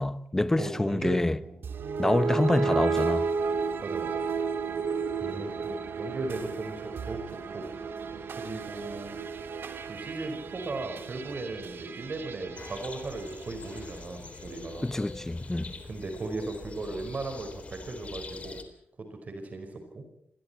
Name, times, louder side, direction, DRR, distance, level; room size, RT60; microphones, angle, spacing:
voice 1, 0.0-1.4 2.0-3.3 5.2-5.5 14.8-15.7, left 1 dB, 10° left, 0.9 m, -27 dB
voice 2, 0.6-1.6 3.8-4.2 5.3-7.7 8.4-9.2 9.9-14.9 15.8-18.6 19.0-20.0, right 2 dB, 40° right, 5.1 m, -37 dB
sound 1, 1.6-13.9, right 5 dB, 70° right, 2.5 m, -33 dB
sound 2, 12.6-18.6, left 3 dB, 35° left, 3.5 m, -44 dB
29.5 x 22.5 x 4.5 m
wide cardioid pair, 165°, 4 cm